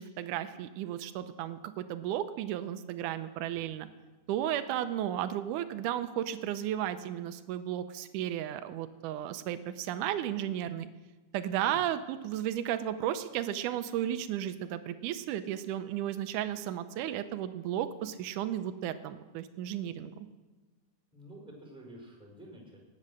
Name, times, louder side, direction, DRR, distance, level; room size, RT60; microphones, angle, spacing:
voice 1, 0.0-3.9 4.3-10.9 11.3-20.3, right 11 dB, 85° right, 11 dB, 2.2 m, -34 dB
voice 2, 21.1-22.8, right 1 dB, ahead, 0 dB, 4.5 m, -50 dB
19.0 x 8.7 x 6.5 m, 1.2 s
omnidirectional pair, 3.7 m